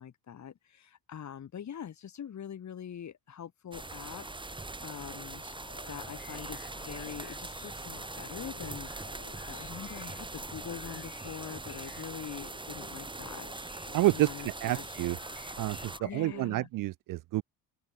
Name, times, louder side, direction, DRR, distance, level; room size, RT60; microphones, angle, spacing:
voice 1, 0.0-4.5 4.8-5.4 5.9-8.9 9.4-13.5 14.1-14.8 16.0-16.7, left 8 dB, 40° left, 2.4 m, -43 dB
sound 1, 3.7-16.0, right 2 dB, 10° right, 2.8 m, -42 dB
sound 2, 5.4-16.6, left 12 dB, 55° left, 4.5 m, -55 dB
voice 2, 13.9-15.2 15.6-17.4, right 17 dB, 50° right, 0.5 m, -29 dB
open air
cardioid pair, 105°, 43 cm